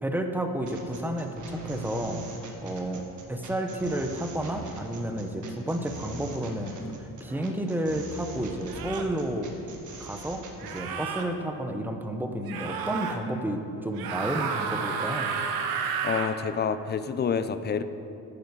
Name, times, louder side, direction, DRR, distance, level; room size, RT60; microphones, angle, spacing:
voice 1, 0.0-2.2 2.6-3.0 3.3-9.5 10.0-15.4, right 1 dB, 5° right, 5 dB, 0.9 m, -31 dB
sound 1, 0.7-10.8, right 3 dB, 50° right, 1.7 m, -43 dB
sound 2, 7.3-7.5 8.7-9.2 10.6-11.3 12.5-13.2 13.9-16.4, right 6 dB, 70° right, 1.1 m, -31 dB
voice 2, 16.0-17.8, left 6 dB, 25° left, 12 dB, 0.5 m, -28 dB
10.0 x 10.0 x 4.7 m, 2.9 s
cardioid pair, 90°, 38 cm